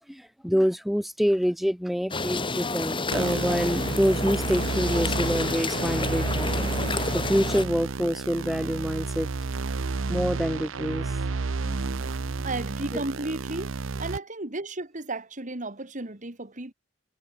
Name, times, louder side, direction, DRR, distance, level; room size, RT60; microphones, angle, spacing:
voice 1, 0.0-6.7 7.1-9.3 10.1-11.2 11.7-12.1 12.9-13.0, equal, ahead, 1.6 m, -26 dB
sound 1, 2.1-7.7, left 3 dB, 25° left, 3.0 m, -29 dB
sound 2, 3.1-14.2, right 4 dB, 90° right, 0.7 m, -31 dB
voice 2, 12.4-13.7 14.0-16.7, right 2 dB, 40° right, 2.2 m, -33 dB
head